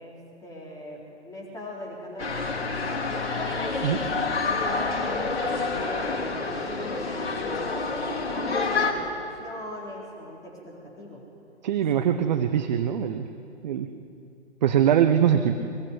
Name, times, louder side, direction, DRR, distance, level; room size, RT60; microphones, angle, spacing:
voice 1, 0.0-3.3 4.4-9.0 9.4-11.2 11.9-12.5, equal, 10° left, -3 dB, 4.1 m, -39 dB
sound 1, 2.2-8.9, left 4 dB, 55° left, 5.2 m, -28 dB
voice 2, 11.6-13.3 13.6-13.9 14.6-15.5, right 9 dB, 40° right, 8 dB, 1.1 m, -22 dB
24.0 x 21.5 x 9.7 m, 2.7 s
figure-of-eight pair, 125°, 35 cm